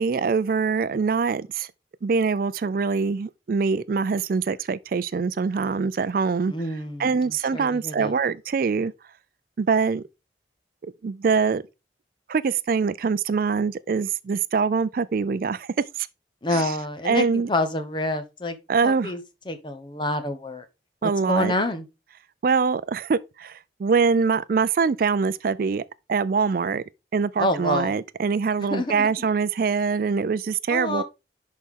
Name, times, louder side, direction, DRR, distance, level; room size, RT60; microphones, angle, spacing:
voice 1, 0.0-1.7 2.0-6.5 7.0-8.9 9.6-10.0 10.8-11.6 12.3-16.1 16.5-16.7 17.0-17.5 18.7-19.1 21.0-21.5 22.4-25.8 26.1-26.8 27.1-31.0, right 5 dB, 55° right, 0.4 m, -24 dB
voice 2, 6.5-8.1 16.4-18.6 18.8-19.2 19.5-20.6 21.0-21.9 27.4-27.9 28.6-29.3 30.7-31.0, left 1 dB, 25° left, 1.0 m, -27 dB
11.0 x 4.2 x 3.7 m
head